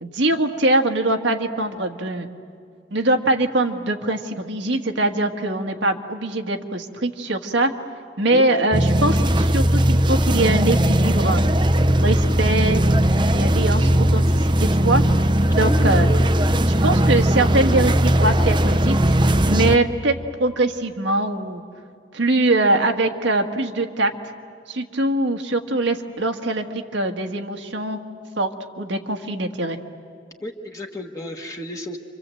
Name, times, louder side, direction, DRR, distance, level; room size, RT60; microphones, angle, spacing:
voice 1, 0.0-2.3 2.9-7.7 8.2-11.4 12.0-12.8 13.3-15.0 15.5-16.1 16.7-21.6 22.1-24.1 24.7-28.0 28.4-29.8, right 2 dB, 85° right, 4 dB, 1.7 m, -22 dB
sound 1, 8.7-19.8, right 1 dB, 25° right, 0.6 m, -18 dB
voice 2, 15.6-16.0 16.6-16.7 30.4-32.0, left 1 dB, 20° left, 1 dB, 1.3 m, -31 dB
29.5 x 25.5 x 7.7 m, 2.3 s
head